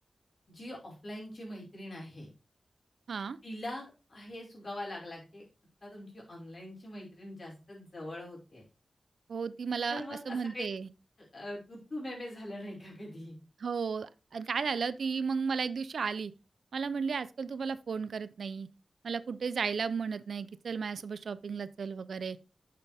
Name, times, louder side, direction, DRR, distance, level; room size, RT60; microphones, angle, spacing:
voice 1, 0.5-2.3 3.4-5.4 5.8-8.6 9.9-10.6 11.3-13.4, left 1 dB, 45° left, 5.0 m, -42 dB
voice 2, 9.3-10.9 13.6-16.3 16.7-18.7 19.0-22.4, right 5 dB, 85° right, 0.5 m, -34 dB
8.9 x 6.8 x 3.4 m
wide cardioid pair, 90°, 0 cm